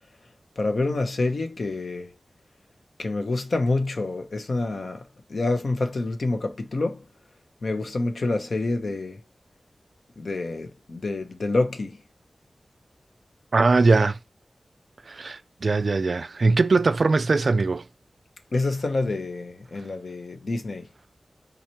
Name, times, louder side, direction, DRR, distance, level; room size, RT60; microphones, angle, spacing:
voice 1, 0.6-2.1 3.0-5.0 5.3-7.0 7.6-9.2 10.2-12.0 18.5-20.9, left 2 dB, 70° left, 0.9 m, -27 dB
voice 2, 13.5-14.2 15.1-17.9, right 3 dB, 65° right, 0.4 m, -21 dB
4.0 x 3.0 x 4.3 m
wide cardioid pair, 85°, 0 cm